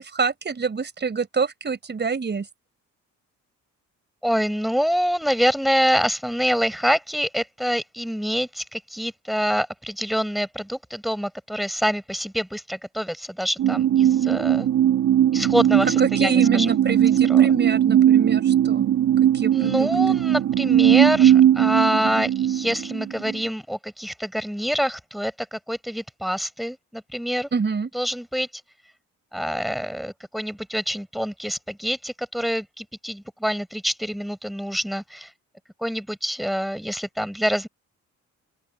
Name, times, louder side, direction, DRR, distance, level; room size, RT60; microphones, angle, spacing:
voice 1, 0.0-2.5 16.0-18.9 19.3-19.9 27.5-27.9, right 5 dB, 35° right, 5.2 m, -26 dB
voice 2, 4.2-14.7 15.3-16.7 17.2-17.5 19.5-27.5 27.9-28.6 29.3-35.3 35.8-37.7, equal, ahead, 6.7 m, -26 dB
sound 1, 13.6-23.4, right 11 dB, 70° right, 2.0 m, -19 dB
open air
cardioid pair, 90°, 30 cm